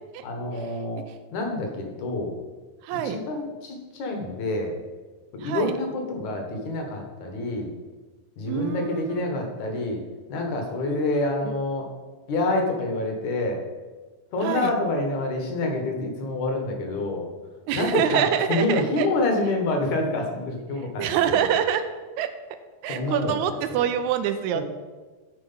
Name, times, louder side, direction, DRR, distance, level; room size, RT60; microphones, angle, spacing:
voice 1, 0.2-1.1 1.3-2.4 2.9-4.8 5.3-7.7 8.4-10.0 10.3-11.9 12.3-13.6 14.3-17.3 17.7-21.4 22.9-23.3 23.7-23.8 24.5-24.6, left 2 dB, 65° left, 3 dB, 2.7 m, -27 dB
voice 2, 2.8-3.2 5.4-5.8 8.5-9.2 10.9-11.1 14.4-14.8 17.7-19.1 21.0-21.8 22.2-22.3 22.8-24.6, right 9 dB, 80° right, 9 dB, 1.8 m, -25 dB
13.0 x 4.5 x 5.6 m, 1.3 s
omnidirectional pair, 3.7 m